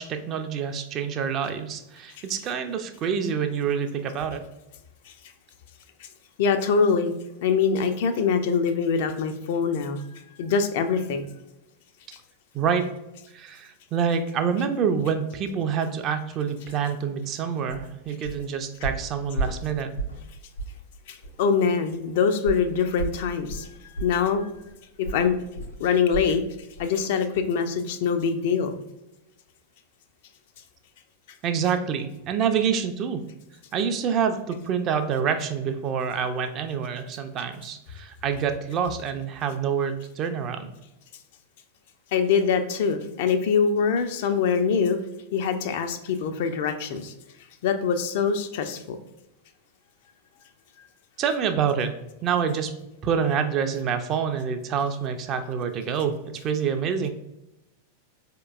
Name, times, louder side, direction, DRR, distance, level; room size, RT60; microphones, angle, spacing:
voice 1, 0.0-4.4 12.5-12.9 13.3-19.9 31.4-33.2 33.7-40.7 51.2-51.9 52.2-52.7 53.0-56.2 56.4-57.1, right 7 dB, 35° right, 7 dB, 0.4 m, -27 dB
voice 2, 6.4-7.1 7.4-10.0 10.4-11.3 21.1-23.7 24.0-24.5 25.1-25.4 25.8-26.4 26.8-28.8 42.1-45.0 45.3-47.1 47.6-49.0, left 6 dB, 50° left, 7 dB, 0.4 m, -24 dB
sound 1, 17.7-17.9 18.2-18.5 18.8-20.3 20.6-20.8 21.2-21.3 22.4-26.4 26.8-27.0 27.3-27.4, right 2 dB, 80° left, 1.0 m, -33 dB
4.4 x 2.9 x 2.4 m, 0.92 s
figure-of-eight pair, 90°, 0 cm